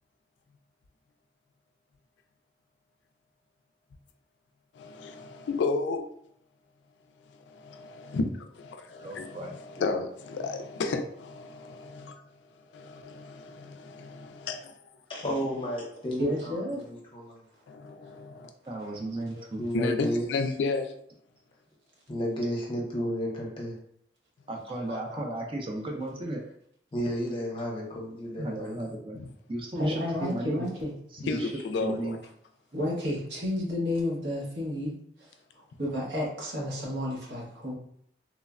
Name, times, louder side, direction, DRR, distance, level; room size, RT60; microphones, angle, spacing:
voice 1, 4.7-6.1 7.3-12.2 12.7-14.7 17.7-18.5 19.7-20.9 29.1-29.3 31.3-32.2, left 3 dB, 90° left, 6 dB, 0.3 m, -33 dB
voice 2, 9.0-9.9 18.7-19.6 24.5-26.4 28.4-29.2 29.5-30.7 31.1-31.5 31.8-32.2, right 1 dB, 30° right, 0 dB, 0.5 m, -35 dB
voice 3, 15.1-17.4 19.6-20.5 22.1-23.7 26.9-28.9 31.3-31.6, equal, 30° left, -2 dB, 0.7 m, -32 dB
voice 4, 16.1-16.8 19.0-19.5 24.9-25.2 29.8-30.9 31.3-31.4 32.7-34.9 35.8-37.7, left 1 dB, 80° right, -3 dB, 0.9 m, -31 dB
3.1 x 2.1 x 2.4 m, 0.68 s
head